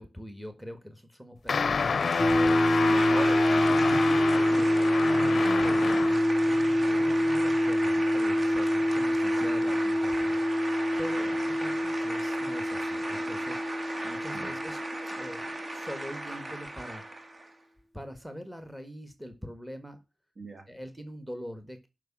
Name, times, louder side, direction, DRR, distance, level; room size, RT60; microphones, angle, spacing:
voice 1, 0.0-2.9 3.5-3.8 4.3-14.8 15.2-17.3 17.9-20.0 20.7-21.9, equal, 5° right, 8 dB, 1.7 m, -44 dB
sound 1, 1.5-6.3, left 5 dB, 70° left, 0.5 m, -29 dB
sound 2, 1.5-17.5, right 2 dB, 35° right, 1.4 m, -37 dB
sound 3, 2.2-16.2, left 1 dB, 25° left, 0.7 m, -26 dB
voice 2, 2.9-4.2 4.5-4.6 6.8-7.1 9.6-9.8 11.2-11.3 14.3-14.5 20.4-20.7, right 2 dB, 60° right, 3 dB, 2.6 m, -39 dB
9.0 x 6.2 x 7.4 m, 0.26 s
wide cardioid pair, 95°, 0 cm